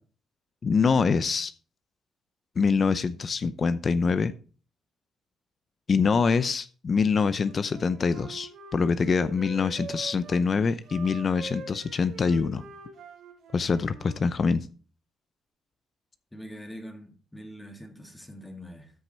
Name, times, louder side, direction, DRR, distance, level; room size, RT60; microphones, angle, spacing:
voice 1, 0.6-1.5 2.6-4.3 5.9-12.6 13.5-14.7, left 5 dB, 40° left, 0.6 m, -25 dB
Wind instrument woodwind instrument, 7.4-10.4 10.8-14.2, right 4 dB, 80° right, 3.0 m, -44 dB
voice 2, 16.3-18.9, equal, 10° left, 2.6 m, -43 dB
13.5 x 5.9 x 4.4 m
cardioid pair, 90°, 0 cm